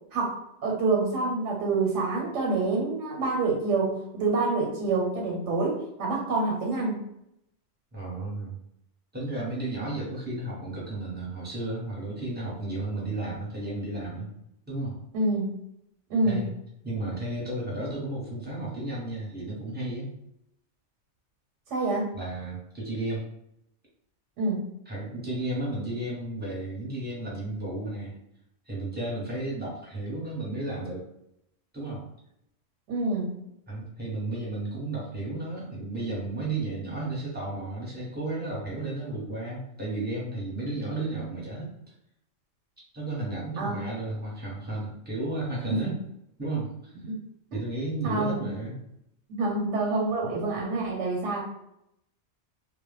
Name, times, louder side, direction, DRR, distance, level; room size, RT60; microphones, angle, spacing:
voice 1, 0.6-7.0 15.1-15.6 16.1-16.4 21.7-22.1 24.4-24.7 32.9-33.4 43.6-43.8 45.7-45.9 47.1-47.2 47.5-47.6 48.0-48.5 49.3-51.4, right 3 dB, 90° right, -1 dB, 1.0 m, -27 dB
voice 2, 7.9-8.6 9.1-14.3 14.7-15.0 16.2-16.5 16.8-20.1 22.1-23.2 24.9-28.1 28.6-31.0 31.7-32.0 33.7-41.7 42.9-46.0 46.4-46.9 47.5-48.8, right 2 dB, 10° right, -5 dB, 0.7 m, -33 dB
2.1 x 2.0 x 3.2 m, 0.78 s
omnidirectional pair, 1.2 m